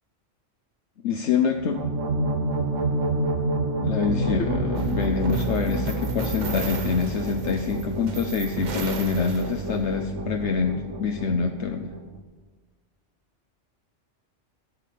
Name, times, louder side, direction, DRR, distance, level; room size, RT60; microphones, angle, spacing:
voice 1, 1.0-1.9 3.8-11.9, left 5 dB, 70° left, 5 dB, 1.0 m, -26 dB
sound 1, 1.5-12.2, right 2 dB, 85° right, 1.7 m, -29 dB
sound 2, 4.8-9.9, right 4 dB, 45° right, 0.8 m, -37 dB
11.0 x 8.3 x 8.5 m, 1.3 s
omnidirectional pair, 1.2 m